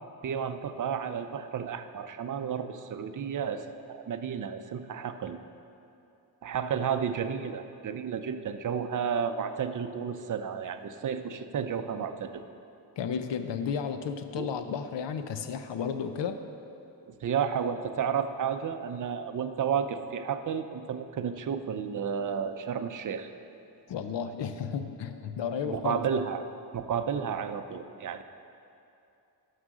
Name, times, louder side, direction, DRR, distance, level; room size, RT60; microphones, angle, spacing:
voice 1, 0.2-5.4 6.4-12.4 14.3-14.5 17.1-23.3 25.7-26.5 26.7-28.2, right 7 dB, 45° right, 8 dB, 0.6 m, -32 dB
voice 2, 13.0-16.5 23.9-26.0, left 7 dB, 70° left, 9 dB, 0.6 m, -33 dB
11.5 x 6.5 x 6.1 m, 2.7 s
wide cardioid pair, 155°, 45 cm